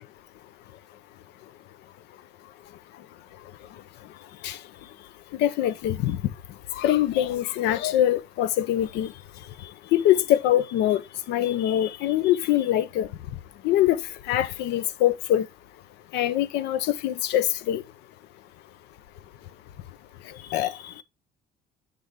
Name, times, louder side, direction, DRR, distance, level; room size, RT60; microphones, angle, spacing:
voice 1, 5.4-6.2 6.8-9.1 9.9-11.0 11.3-13.1 13.6-14.0 14.3-15.5 16.1-17.8 20.5-20.7, left 12 dB, 85° left, 0.6 m, -23 dB
8.1 x 3.4 x 3.6 m
cardioid pair, 110°, 17 cm